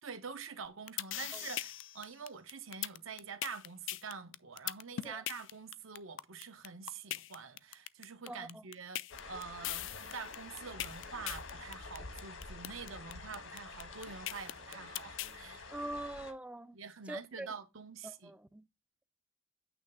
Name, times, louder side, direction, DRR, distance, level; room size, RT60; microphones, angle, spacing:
voice 1, 0.0-9.0 9.2-15.7 16.7-18.3, right 5 dB, 80° right, 1.0 m, -46 dB
sound 1, 0.6-15.3, left 13 dB, 65° left, 0.4 m, -40 dB
voice 2, 8.3-8.6 15.7-16.8 17.1-17.5 18.0-18.6, right 1 dB, 5° right, 0.3 m, -43 dB
sound 2, 9.1-16.3, left 3 dB, 80° left, 1.4 m, -48 dB
8.7 x 3.2 x 5.4 m
head